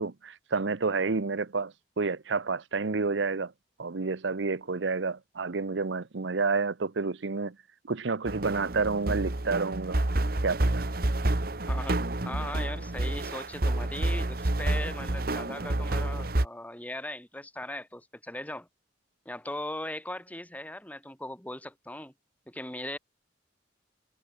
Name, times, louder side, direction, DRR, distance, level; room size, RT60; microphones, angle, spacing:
voice 1, 0.0-3.5 3.8-7.5 7.9-10.0 10.4-10.9, right 4 dB, 75° right, 0.8 m, -29 dB
sound 1, 8.3-16.5, right 1 dB, 50° right, 1.4 m, -29 dB
voice 2, 11.7-18.7 19.3-22.1 22.5-23.0, left 1 dB, 10° left, 3.7 m, -39 dB
head